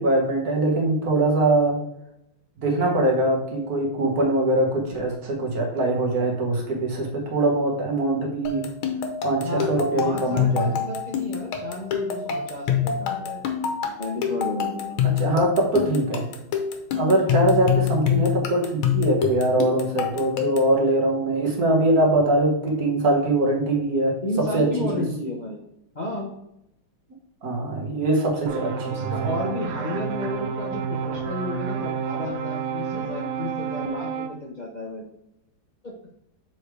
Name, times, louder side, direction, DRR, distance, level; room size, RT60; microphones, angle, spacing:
voice 1, 0.0-1.8 2.6-8.7 9.2-10.7 15.2-16.3 17.0-24.2 24.5-25.0 27.4-29.3 32.9-33.0, right 2 dB, 45° right, 0 dB, 1.9 m, -22 dB
sound 1, 8.5-20.8, left 9 dB, 75° left, 1.7 m, -26 dB
voice 2, 9.4-9.7 10.0-13.4 14.0-15.0 17.2-17.4 24.2-25.6 25.9-26.3 28.9-35.0 35.8-35.9, left 1 dB, 40° left, -2 dB, 0.6 m, -32 dB
sound 2, 28.4-34.3, right 6 dB, 70° right, 1.3 m, -30 dB
7.0 x 4.7 x 3.3 m, 0.80 s
omnidirectional pair, 2.3 m